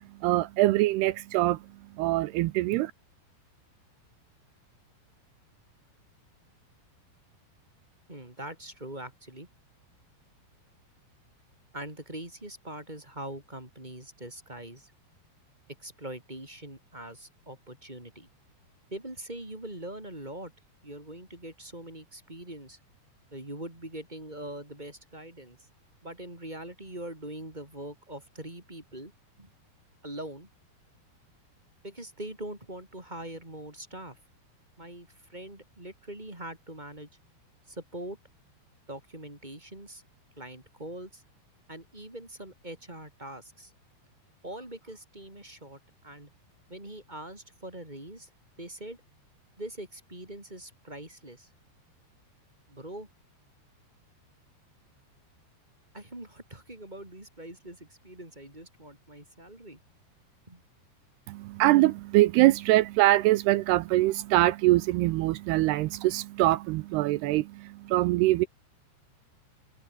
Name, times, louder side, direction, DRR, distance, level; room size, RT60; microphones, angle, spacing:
voice 1, 0.2-1.6 2.0-2.9 61.3-68.5, right 17 dB, 80° right, 2.5 m, -23 dB
voice 2, 8.1-9.5 11.7-14.9 15.8-18.3 18.9-20.5 20.8-22.8 23.3-25.6 26.0-29.1 29.4-29.5 30.0-30.5 31.8-34.2 34.8-37.1 37.7-38.2 38.9-40.0 40.4-41.2 41.7-43.7 44.4-46.3 46.7-48.3 48.6-49.0 49.6-51.5 52.7-53.1 55.9-59.8 60.5-60.6, right 1 dB, 10° right, 4.2 m, -42 dB
omnidirectional pair, 5.1 m